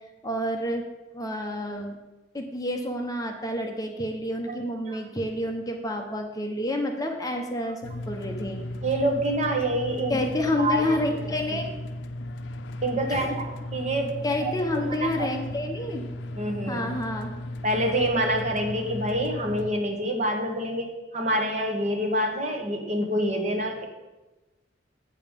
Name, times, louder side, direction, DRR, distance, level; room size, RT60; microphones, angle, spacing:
voice 1, 0.2-0.8 1.1-2.0 2.3-8.6 10.1-11.7 13.1-13.3 14.2-16.0 16.7-17.3, left 1 dB, 20° left, 3 dB, 0.8 m, -29 dB
voice 2, 4.5-5.0 7.6-7.7 8.8-10.2 10.6-10.8 11.5-11.6 12.8-14.2 14.4-14.5 14.8-15.3 16.4-16.8 17.6-23.9, right 1 dB, 40° right, 1 dB, 1.5 m, -27 dB
sound 1, 7.8-19.7, left 1 dB, 90° left, 0.5 m, -36 dB
8.2 x 7.3 x 5.2 m, 1.1 s
head